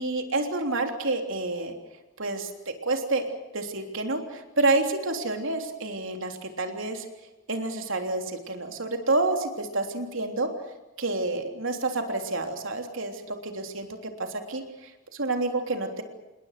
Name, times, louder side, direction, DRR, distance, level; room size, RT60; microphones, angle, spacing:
voice 1, 0.0-1.7 2.2-3.2 3.5-7.1 7.5-10.5 11.0-16.0, right 2 dB, 65° right, 4 dB, 3.4 m, -29 dB
28.0 x 20.5 x 6.8 m, 1.1 s
head